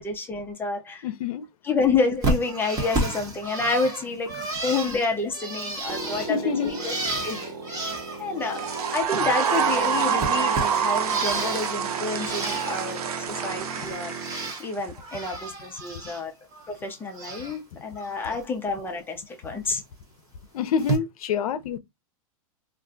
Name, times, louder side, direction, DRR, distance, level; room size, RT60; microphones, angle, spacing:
voice 1, 0.0-1.1 1.6-6.9 7.2-14.1 14.6-16.3 16.7-19.8, left 4 dB, 10° left, 0.5 m, -29 dB
voice 2, 1.0-1.4 6.1-6.8 20.5-21.8, left 6 dB, 75° left, 0.5 m, -27 dB
Bird, 2.2-9.0 9.3-11.8 12.1-13.0 13.3-14.6 15.0-16.2 16.5-17.6 18.0-18.4 19.7-19.8 20.8-21.0, right 2 dB, 20° right, 1.0 m, -32 dB
sound 1, 5.9-14.5, right 3 dB, 40° right, 1.4 m, -36 dB
sound 2, 8.5-14.9, right 8 dB, 90° right, 0.6 m, -27 dB
2.5 x 2.2 x 3.8 m
supercardioid pair, 145°, 19 cm